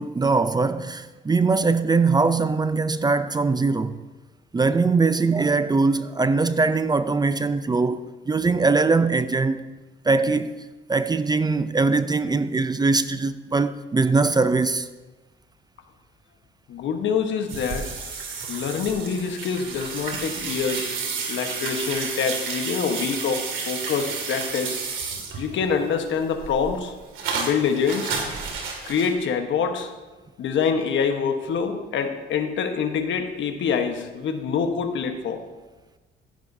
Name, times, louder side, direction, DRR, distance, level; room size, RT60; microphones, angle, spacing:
voice 1, 0.0-4.0 4.5-9.6 10.0-10.6 10.9-14.9, right 4 dB, 20° right, 0.5 m, -21 dB
voice 2, 16.7-17.9 18.5-21.0 21.3-24.8 25.4-26.9 27.3-28.2 28.8-29.9 30.4-35.4, left 6 dB, 75° left, 1.2 m, -25 dB
sound 1, 17.5-25.7 26.1-29.1, right 5 dB, 80° right, 2.3 m, -31 dB
15.5 x 10.0 x 2.7 m
cardioid pair, 90°, 20 cm